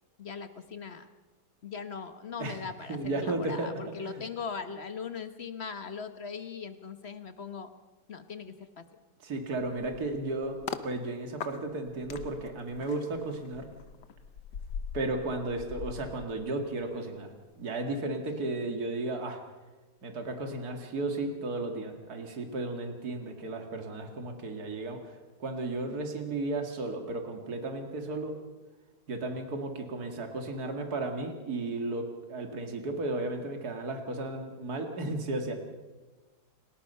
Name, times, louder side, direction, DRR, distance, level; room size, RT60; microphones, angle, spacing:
voice 1, 0.2-1.1 1.6-7.7 8.1-8.9 18.3-18.4, left 5 dB, 40° left, 10 dB, 1.3 m, -40 dB
voice 2, 2.9-3.7 4.0-4.2 9.2-10.6 10.8-13.6 14.9-19.4 20.0-28.3 29.1-35.5, right 2 dB, 65° right, 4 dB, 2.6 m, -34 dB
sound 1, 9.6-10.9 11.4-17.0 17.3-17.6, left 7 dB, 85° left, 1.7 m, -42 dB
29.5 x 19.0 x 5.6 m, 1.2 s
omnidirectional pair, 1.8 m